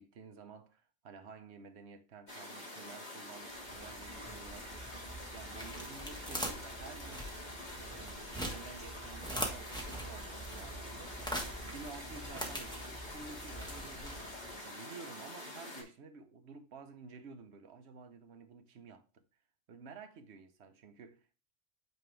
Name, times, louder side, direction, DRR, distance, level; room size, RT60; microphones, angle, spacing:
voice 1, 0.0-4.9 5.3-7.3 7.7-11.2 11.7-19.2 19.7-21.5, right 5 dB, 60° right, 1.1 m, -52 dB
sound 1, 2.3-15.8, left 1 dB, 35° left, 2.3 m, -47 dB
sound 2, 3.5-14.6, equal, 5° left, 1.2 m, -43 dB
9.1 x 3.4 x 3.3 m
omnidirectional pair, 1.3 m